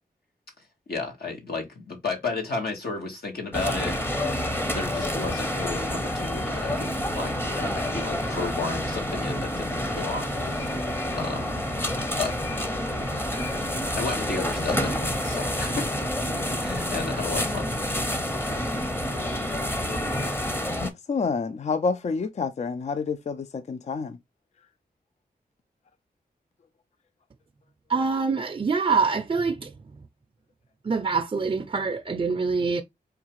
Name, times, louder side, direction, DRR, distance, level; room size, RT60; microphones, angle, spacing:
voice 1, 0.9-3.9 4.7-11.5 12.2-12.3 14.0-15.9 16.6-17.7, left 3 dB, 80° left, 1.3 m, -33 dB
sound 1, 3.5-20.9, left 1 dB, 15° left, 0.7 m, -28 dB
voice 2, 20.8-24.2, left 4 dB, 45° left, 0.4 m, -28 dB
voice 3, 27.9-29.7 30.9-32.8, right 4 dB, 35° right, 0.4 m, -25 dB
4.5 x 2.4 x 2.9 m
wide cardioid pair, 65°, 16 cm